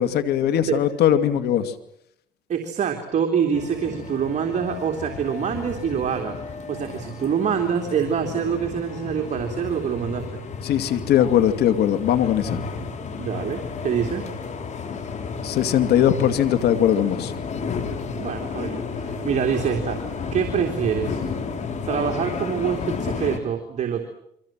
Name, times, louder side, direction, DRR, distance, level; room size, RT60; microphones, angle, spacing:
voice 1, 0.0-1.7 10.6-12.6 15.4-17.3, left 10 dB, 70° left, 11 dB, 2.6 m, -20 dB
voice 2, 2.5-6.3 6.7-10.4 13.2-14.3 18.2-20.0 20.3-21.2 21.9-24.1, right 7 dB, 45° right, 3 dB, 3.3 m, -25 dB
sound 1, 3.5-23.4, left 5 dB, 45° left, 4.8 m, -32 dB
28.5 x 24.5 x 7.6 m, 0.74 s
cardioid pair, 110°, 17 cm